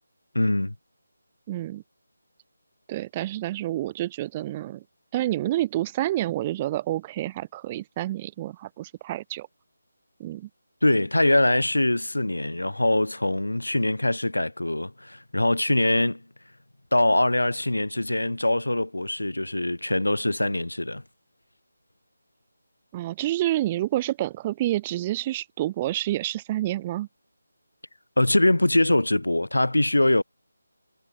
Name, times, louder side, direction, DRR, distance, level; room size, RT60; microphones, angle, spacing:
voice 1, 0.3-0.7 10.8-16.2 16.9-21.0 28.2-30.2, left 1 dB, 80° left, 4.1 m, -23 dB
voice 2, 1.5-1.8 2.9-4.8 5.1-9.5 10.2-10.5 22.9-27.1, right 14 dB, 20° right, 1.3 m, -28 dB
figure-of-eight pair, 155°, 0 cm